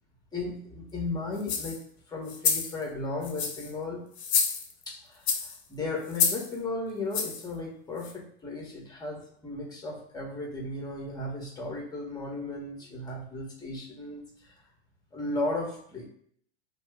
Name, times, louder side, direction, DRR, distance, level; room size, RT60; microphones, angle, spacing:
voice 1, 0.3-1.8 2.1-4.1 4.9-14.6 15.1-16.0, left 2 dB, 10° left, -1 dB, 1.1 m, -35 dB
sound 1, 1.4-1.8 2.3-2.7 3.2-3.7 4.2-4.8 5.3-5.6 6.1-6.5 7.1-7.4 8.0-8.1, left 6 dB, 75° left, 0.7 m, -28 dB
2.7 x 2.2 x 3.5 m, 0.66 s
hypercardioid pair, 100°, 33 cm